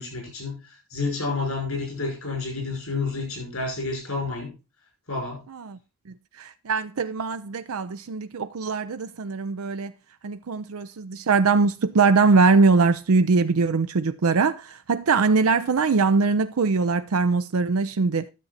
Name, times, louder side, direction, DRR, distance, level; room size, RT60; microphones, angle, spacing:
voice 1, 0.0-4.5 5.1-5.4, left 3 dB, 75° left, 6.0 m, -30 dB
voice 2, 6.4-9.9 10.2-18.3, right 4 dB, 80° right, 0.5 m, -22 dB
10.5 x 7.1 x 4.1 m
head